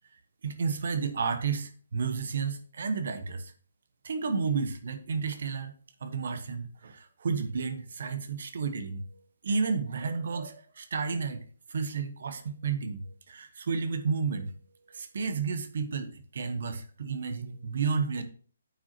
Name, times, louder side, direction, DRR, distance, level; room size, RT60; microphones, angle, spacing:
voice 1, 0.4-3.5 4.0-5.7 6.0-9.0 9.4-11.4 11.7-14.5 14.9-18.2, right 5 dB, 60° right, 9 dB, 1.1 m, -31 dB
9.3 x 6.2 x 2.9 m, 0.42 s
figure-of-eight pair, 145°, 0 cm